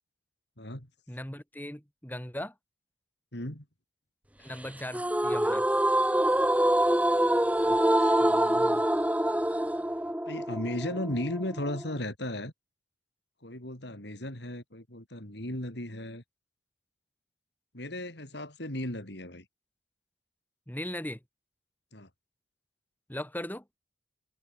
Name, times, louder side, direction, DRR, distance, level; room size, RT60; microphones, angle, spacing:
voice 1, 0.6-0.9 3.3-3.6 7.6-8.8 10.3-12.5 13.4-16.2 17.7-19.4 21.9-22.1, left 1 dB, 60° left, 4.5 m, -36 dB
voice 2, 1.1-2.5 4.4-5.7 20.7-21.2 23.1-23.6, left 1 dB, 10° left, 4.3 m, -38 dB
sound 1, 4.9-12.0, right 1 dB, 5° right, 1.6 m, -25 dB
head